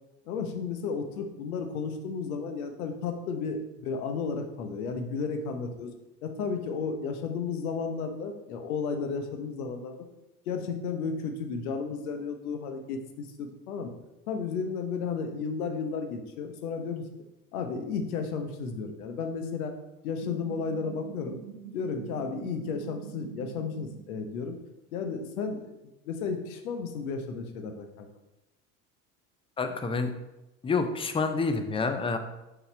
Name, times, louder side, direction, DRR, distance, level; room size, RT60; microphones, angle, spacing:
voice 1, 0.3-5.9 6.2-10.0 10.5-13.9 14.3-17.0 17.5-19.7 20.0-21.4 21.7-24.6 24.9-25.7 26.1-28.1, left 5 dB, 70° left, 5 dB, 1.0 m, -33 dB
sound 1, 20.2-24.1, right 8 dB, 50° right, 1.0 m, -45 dB
voice 2, 29.6-30.1 30.6-32.2, left 4 dB, 10° left, 8 dB, 0.5 m, -28 dB
5.5 x 4.2 x 4.4 m, 0.97 s
figure-of-eight pair, 70°, 45 cm